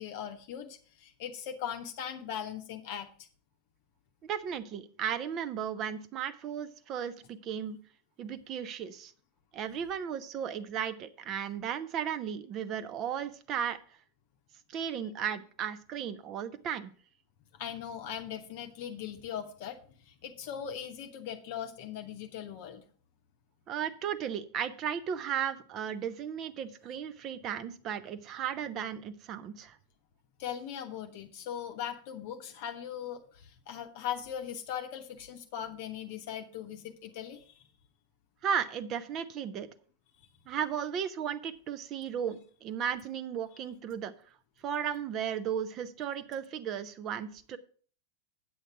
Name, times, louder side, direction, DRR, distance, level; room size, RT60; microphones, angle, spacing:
voice 1, 0.0-3.1 17.6-19.8 20.1-22.8 30.4-37.6 40.2-40.3, left 9 dB, 50° left, 5 dB, 0.8 m, -39 dB
voice 2, 4.2-7.8 8.2-9.1 9.5-13.8 14.7-16.9 23.7-29.8 38.4-39.7 40.5-44.1 44.6-47.6, right 8 dB, 35° right, 13 dB, 0.7 m, -35 dB
8.7 x 7.9 x 4.7 m, 0.44 s
figure-of-eight pair, 90°, 0 cm